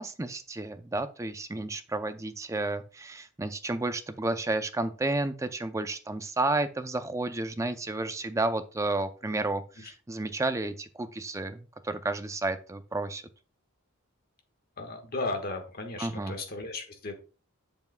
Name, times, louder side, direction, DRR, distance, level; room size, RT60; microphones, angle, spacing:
voice 1, 0.0-11.6 11.8-13.2 16.0-16.3, right 2 dB, 15° right, 10 dB, 0.4 m, -31 dB
voice 2, 14.8-17.2, left 2 dB, 45° left, 4 dB, 1.4 m, -35 dB
8.1 x 6.9 x 2.2 m, 0.35 s
head